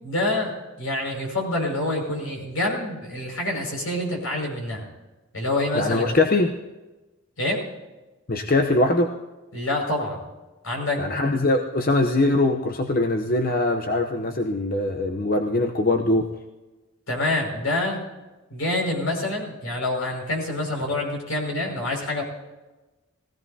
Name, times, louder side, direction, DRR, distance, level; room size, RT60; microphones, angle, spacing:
voice 1, 0.0-4.9 5.3-6.2 7.4-7.6 9.5-10.2 10.6-11.0 17.1-18.0 18.5-22.2, left 2 dB, 85° left, -1 dB, 5.8 m, -26 dB
voice 2, 5.7-6.5 8.3-9.1 11.0-16.3, left 2 dB, 45° left, 4 dB, 0.8 m, -22 dB
20.5 x 16.0 x 2.8 m, 1.1 s
head